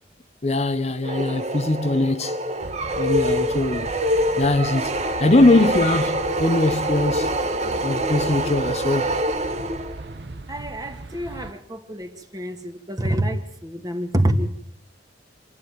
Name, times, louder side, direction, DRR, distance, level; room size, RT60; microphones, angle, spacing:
voice 1, 0.4-2.4 3.0-3.9 4.4-7.4 7.8-9.1, left 2 dB, 35° left, 0.9 m, -21 dB
sound 1, 1.0-10.1, right 1 dB, 35° right, 1.4 m, -25 dB
sound 2, 2.6-11.5, right 2 dB, 60° right, 1.0 m, -39 dB
voice 2, 10.5-14.5, right 1 dB, 20° right, 2.1 m, -26 dB
28.5 x 12.5 x 9.5 m
head